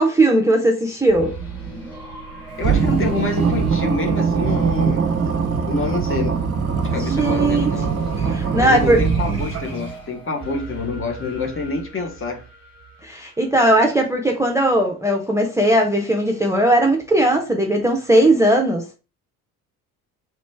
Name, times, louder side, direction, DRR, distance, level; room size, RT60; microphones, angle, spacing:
voice 1, 0.0-1.3 6.9-7.7 8.3-9.0 13.0-19.0, right 1 dB, 5° right, 0.7 m, -18 dB
sound 1, 1.1-13.8, right 2 dB, 90° left, 1.8 m, -36 dB
voice 2, 2.6-5.4 5.7-6.4 6.9-7.9 8.6-12.4, left 3 dB, 30° left, 1.0 m, -27 dB
sound 2, 2.6-9.9, right 6 dB, 35° right, 0.8 m, -22 dB
3.2 x 3.1 x 4.4 m
figure-of-eight pair, 55°, 44 cm